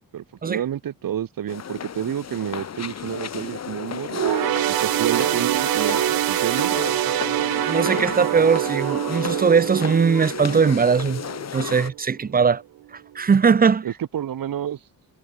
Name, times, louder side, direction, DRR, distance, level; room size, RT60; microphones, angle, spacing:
voice 1, 0.1-4.2 4.7-6.8 13.8-14.8, right 10 dB, 70° right, 1.7 m, -29 dB
sound 1, 1.5-11.9, left 8 dB, 50° left, 1.3 m, -33 dB
sound 2, 4.1-11.8 12.2-12.4 13.3-13.4, right 15 dB, 90° right, 0.5 m, -25 dB
voice 2, 7.7-11.2 11.5-12.6 12.9-13.9, right 5 dB, 25° right, 0.6 m, -20 dB
wide cardioid pair, 160°, 35 cm